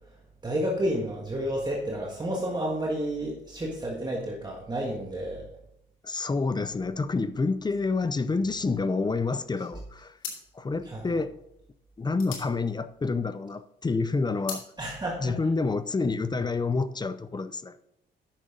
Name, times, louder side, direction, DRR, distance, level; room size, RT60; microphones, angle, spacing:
voice 1, 0.4-5.5 10.9-11.1 14.8-15.3, equal, 20° right, -2 dB, 1.7 m, -30 dB
voice 2, 6.0-10.2 10.5-11.3 12.0-14.6 15.2-17.8, left 3 dB, 20° left, 13 dB, 0.5 m, -28 dB
sound 1, 9.5-9.7 10.2-13.5 13.9-14.7, left 6 dB, 90° left, 2.4 m, -41 dB
10.5 x 6.6 x 3.9 m, 0.82 s
cardioid pair, 90°, 20 cm